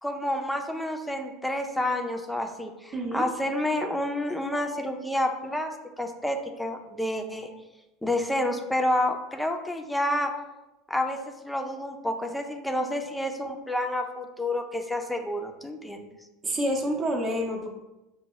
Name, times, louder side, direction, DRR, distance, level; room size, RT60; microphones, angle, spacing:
voice 1, 0.0-7.5 8.0-10.3 10.9-16.1, left 1 dB, 5° left, 4 dB, 0.6 m, -29 dB
voice 2, 2.9-3.2 16.4-17.7, equal, 35° right, -1 dB, 0.8 m, -28 dB
6.5 x 2.2 x 3.0 m, 1.0 s
hypercardioid pair, 75°, 0 cm